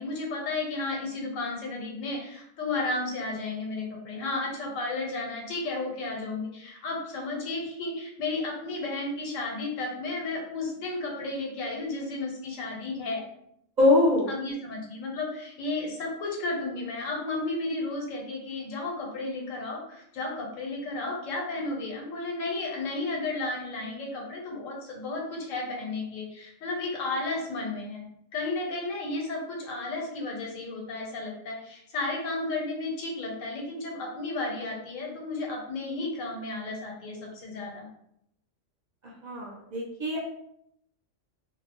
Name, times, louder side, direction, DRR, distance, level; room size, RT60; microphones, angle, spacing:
voice 1, 0.0-13.2 14.3-28.1 28.3-37.9, left 2 dB, 85° left, -1 dB, 1.1 m, -33 dB
voice 2, 13.8-14.3 39.0-40.2, left 2 dB, 45° right, -4 dB, 0.6 m, -23 dB
2.7 x 2.0 x 2.9 m, 0.76 s
omnidirectional pair, 1.3 m